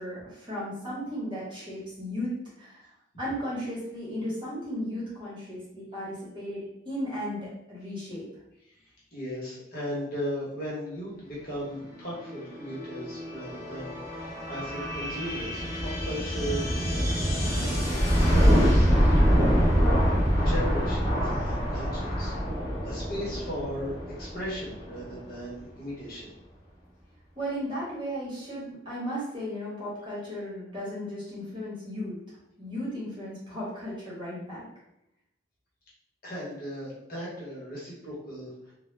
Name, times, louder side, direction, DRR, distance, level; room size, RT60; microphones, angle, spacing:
voice 1, 0.0-2.3 2.6-2.9 3.2-8.3 27.4-32.2 32.6-34.7, equal, 25° right, -8 dB, 0.9 m, -35 dB
voice 2, 9.1-18.7 18.9-19.8 20.4-26.3 36.2-38.7, equal, 50° left, -6 dB, 0.8 m, -37 dB
sound 1, 11.9-25.4, equal, 20° left, 0.7 m, -25 dB
2.1 x 2.0 x 3.1 m, 0.82 s
head